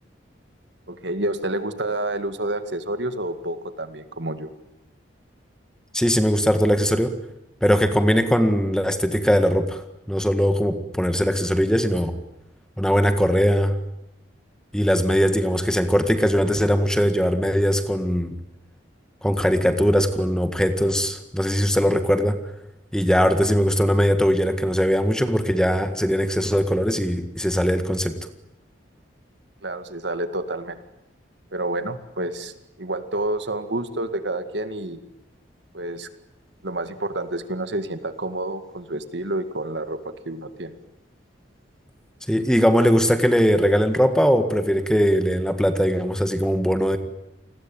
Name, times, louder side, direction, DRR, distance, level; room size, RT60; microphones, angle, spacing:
voice 1, 0.9-4.5 29.6-30.8 31.5-32.5 32.8-35.0 35.7-36.1 36.6-40.7, right 1 dB, 70° right, 10 dB, 2.1 m, -29 dB
voice 2, 5.9-7.1 7.6-9.8 10.1-12.1 12.8-13.8 14.7-18.3 19.2-22.4 22.9-28.1 42.3-47.0, equal, 5° left, 8 dB, 1.8 m, -20 dB
29.0 x 20.5 x 9.1 m, 0.88 s
head